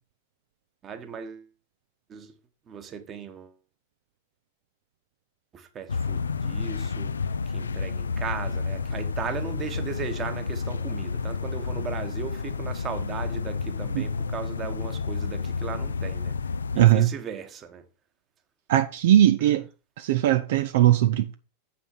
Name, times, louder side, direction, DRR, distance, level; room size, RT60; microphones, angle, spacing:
voice 1, 0.8-1.4 2.1-2.3 2.7-3.5 5.5-7.2 7.5-16.4 16.7-17.8, right 7 dB, 25° right, 1.5 m, -37 dB
sound 1, 5.9-16.8, left 5 dB, 70° left, 0.4 m, -30 dB
voice 2, 16.8-17.1 18.7-19.7 20.0-21.3, right 12 dB, 55° right, 0.6 m, -19 dB
7.6 x 5.8 x 5.6 m
figure-of-eight pair, 90°, 0 cm